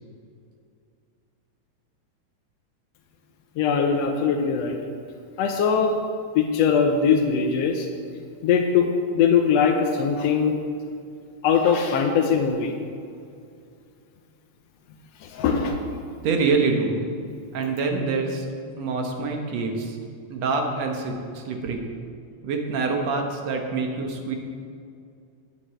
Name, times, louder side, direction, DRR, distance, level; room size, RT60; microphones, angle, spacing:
voice 1, 3.6-4.8 5.4-5.9 6.3-7.9 8.4-8.9 9.1-10.5 11.4-12.7 15.2-15.8, left 6 dB, 70° left, 3 dB, 1.7 m, -21 dB
voice 2, 16.2-17.1 17.5-18.5 18.8-20.0 20.3-21.9 22.4-24.4, right 4 dB, 65° right, 3 dB, 2.2 m, -25 dB
8.7 x 8.2 x 7.7 m, 2.3 s
omnidirectional pair, 3.4 m